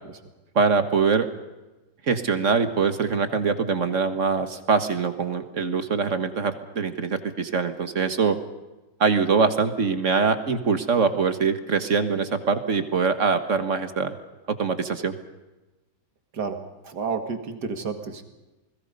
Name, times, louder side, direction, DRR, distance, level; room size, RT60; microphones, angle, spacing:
voice 1, 0.5-1.3 2.1-8.4 9.0-14.1 14.6-15.2, right 5 dB, 50° right, 9 dB, 1.6 m, -23 dB
voice 2, 16.3-18.2, right 5 dB, 70° right, 6 dB, 2.6 m, -31 dB
28.5 x 20.5 x 5.4 m, 1.1 s
omnidirectional pair, 1.8 m